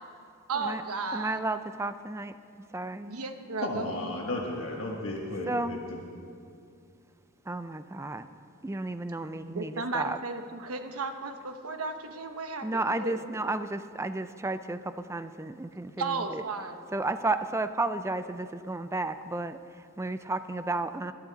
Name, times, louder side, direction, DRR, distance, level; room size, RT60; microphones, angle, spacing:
voice 1, 0.5-1.4 2.9-4.3 9.5-13.2 16.0-16.8, right 3 dB, 80° right, 7 dB, 1.1 m, -35 dB
voice 2, 1.1-2.3 2.7-3.1 5.5-5.8 7.5-8.3 8.6-10.2 12.6-16.4 16.9-21.1, right 2 dB, 10° right, 11 dB, 0.4 m, -32 dB
voice 3, 3.6-6.0, left 2 dB, 65° left, -2 dB, 1.4 m, -34 dB
21.5 x 11.5 x 4.0 m, 2.5 s
head